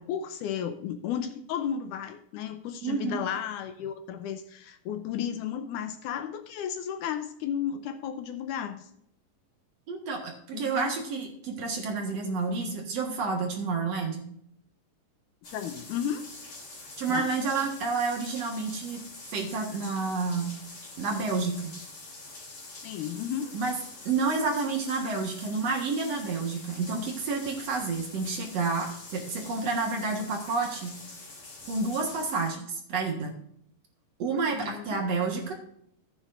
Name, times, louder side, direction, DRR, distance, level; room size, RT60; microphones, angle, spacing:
voice 1, 0.0-8.9 10.5-10.9 15.5-16.3 17.1-17.3 22.8-23.5 34.6-35.0, left 9 dB, 75° left, 9 dB, 2.0 m, -33 dB
voice 2, 2.8-3.2 9.9-14.3 17.0-19.0 19.3-20.6 21.0-21.7 23.5-23.8 24.1-31.0 31.7-33.3 34.2-35.5, right 4 dB, 55° right, 1 dB, 2.4 m, -29 dB
sound 1, 15.4-32.5, left 3 dB, 45° left, 4.2 m, -45 dB
15.0 x 9.3 x 2.6 m, 0.71 s
omnidirectional pair, 3.9 m